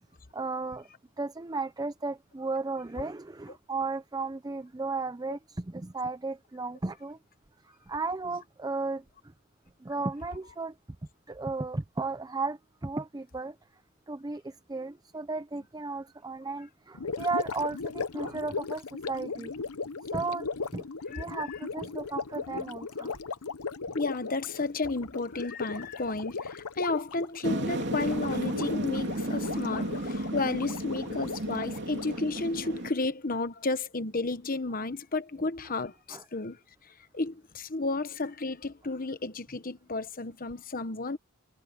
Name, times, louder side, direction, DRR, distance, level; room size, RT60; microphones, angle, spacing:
voice 1, 0.3-0.9 1.2-7.2 7.9-9.0 9.8-10.7 11.3-13.6 14.1-19.5 20.1-20.5 20.7-23.2 36.1-36.2, right 3 dB, 15° right, 0.5 m, -34 dB
Gurgling, 16.9-32.2, left 4 dB, 90° left, 0.9 m, -37 dB
voice 2, 21.1-21.6 23.9-41.2, left 3 dB, 40° left, 1.1 m, -32 dB
sound 1, 27.4-32.9, right 1 dB, 50° right, 3.3 m, -33 dB
head